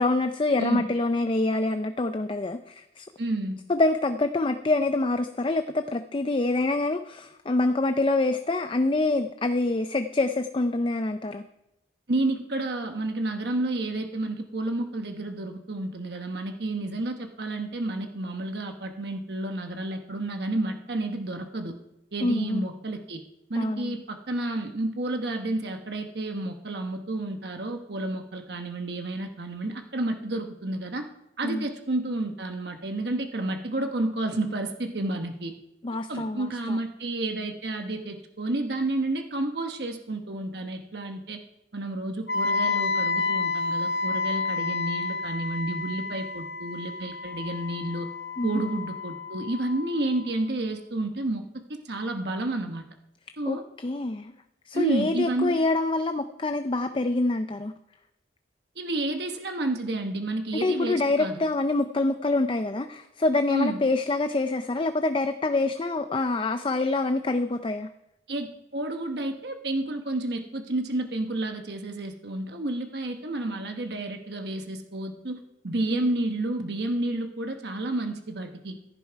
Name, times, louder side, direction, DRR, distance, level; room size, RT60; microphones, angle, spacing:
voice 1, 0.0-3.1 3.7-11.4 22.2-22.7 23.6-23.9 31.4-31.7 35.8-36.8 48.4-48.5 53.5-54.3 54.7-57.7 60.6-67.9 75.9-76.0, left 2 dB, 30° left, 8 dB, 0.5 m, -26 dB
voice 2, 3.2-3.6 12.1-21.8 22.1-23.2 23.5-31.0 31.4-35.5 36.1-41.4 41.7-48.1 48.4-51.4 51.7-52.8 53.4-53.6 54.7-55.6 58.8-61.4 63.5-63.8 68.3-75.4 75.6-78.8, right 2 dB, 60° right, 5 dB, 1.1 m, -30 dB
Wind instrument woodwind instrument, 42.3-50.2, left 3 dB, 90° left, 1.0 m, -30 dB
15.5 x 10.5 x 4.7 m, 0.90 s
head